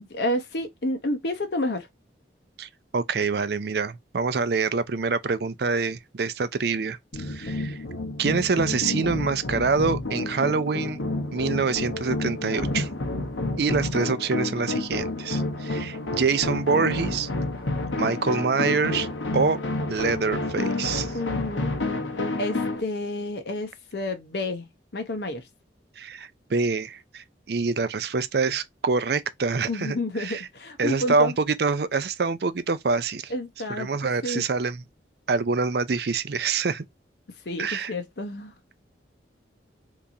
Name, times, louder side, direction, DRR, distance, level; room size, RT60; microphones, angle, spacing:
voice 1, 0.0-1.9 13.4-14.0 21.1-21.8 22.4-24.7 24.9-25.4 29.7-31.3 33.3-33.9 34.2-34.5 37.5-38.5, left 1 dB, 60° left, 0.7 m, -30 dB
voice 2, 2.6-7.8 8.2-11.0 11.3-12.9 13.6-17.3 18.0-19.1 19.3-19.6 19.9-21.1 26.0-30.4 30.8-33.3 33.8-34.8 35.3-36.8 37.6-37.9, right 4 dB, 55° right, 0.5 m, -26 dB
sound 1, 7.1-22.8, left 2 dB, 90° left, 1.0 m, -29 dB
3.6 x 2.9 x 2.6 m
head